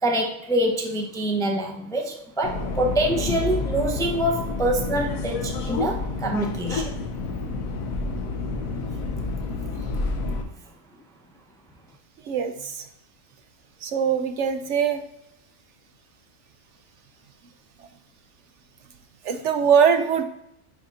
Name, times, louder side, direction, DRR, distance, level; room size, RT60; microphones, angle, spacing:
voice 1, 0.0-6.9, right 1 dB, 5° left, 1 dB, 0.5 m, -25 dB
Subway metro underground, 2.4-10.4, left 3 dB, 85° left, 1.2 m, -29 dB
voice 2, 12.3-12.8 13.8-15.0 19.2-20.2, right 7 dB, 70° right, 8 dB, 0.8 m, -22 dB
10.5 x 4.2 x 2.5 m, 0.83 s
omnidirectional pair, 1.4 m